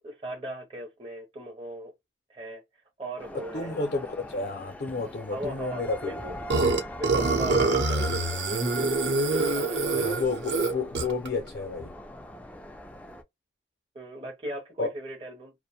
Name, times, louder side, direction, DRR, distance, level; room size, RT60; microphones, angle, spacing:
voice 1, 0.0-1.9 2.3-2.6 3.0-3.8 5.3-6.5 7.0-8.4 9.3-10.1 13.9-15.5, right 1 dB, 30° right, 0.6 m, -38 dB
sound 1, 3.2-13.2, left 1 dB, 10° left, 0.3 m, -42 dB
voice 2, 3.5-6.2 9.9-11.9 14.8-14.9, left 3 dB, 60° left, 0.5 m, -31 dB
Burping eructation, 6.5-11.3, right 3 dB, 75° right, 0.7 m, -25 dB
2.5 x 2.1 x 2.7 m
head